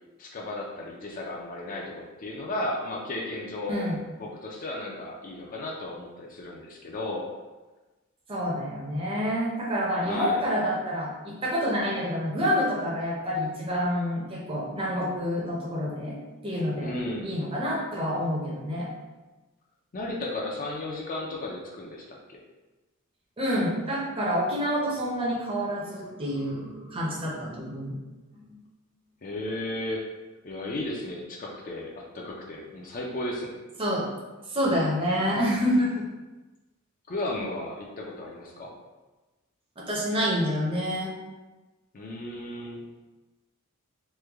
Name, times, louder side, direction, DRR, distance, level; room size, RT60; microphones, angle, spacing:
voice 1, 0.2-3.9 4.2-7.3 10.0-10.5 16.8-17.3 19.9-22.4 29.2-30.0 30.4-33.5 37.1-38.7 41.9-42.9, left 1 dB, 40° left, -1 dB, 0.5 m, -34 dB
voice 2, 8.3-16.2 16.4-16.9 17.2-18.9 23.4-28.0 28.4-28.5 33.8-34.1 34.5-36.0 39.8-41.1, equal, 25° right, -4 dB, 0.6 m, -28 dB
3.1 x 2.2 x 3.4 m, 1.2 s
head